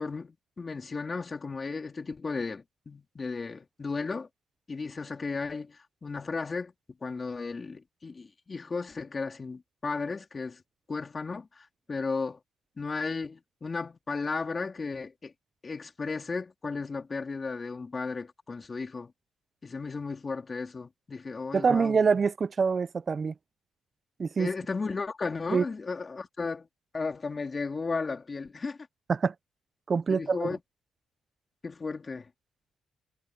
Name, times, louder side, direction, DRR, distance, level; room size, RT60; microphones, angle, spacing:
voice 1, 0.0-4.3 4.7-6.7 7.0-10.6 10.9-12.4 12.8-15.3 15.6-19.1 19.6-22.0 24.4-26.7 26.9-28.8 30.1-30.6 31.6-32.3, left 4 dB, 30° left, 3.9 m, -34 dB
voice 2, 21.5-23.3 24.2-24.5 25.5-25.6 29.1-29.3 29.9-30.5, right 5 dB, 40° right, 0.6 m, -25 dB
cardioid pair, 90°, 0 cm